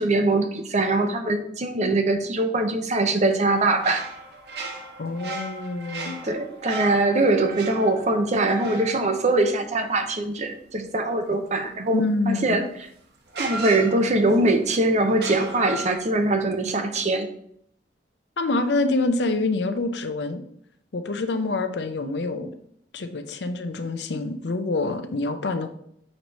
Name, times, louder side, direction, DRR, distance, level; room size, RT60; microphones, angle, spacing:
voice 1, 0.0-4.0 6.2-12.0 12.3-12.6 13.4-17.3, right 2 dB, 40° right, 6 dB, 0.7 m, -22 dB
sound 1, 3.5-10.1 12.4-12.5 13.3-14.5 15.1-16.3, right 2 dB, 65° right, 1.0 m, -36 dB
voice 2, 5.0-6.2 11.9-12.6 18.4-20.4 20.9-22.5 22.9-25.7, left 2 dB, 70° left, 8 dB, 0.6 m, -26 dB
6.5 x 3.1 x 5.3 m, 0.69 s
head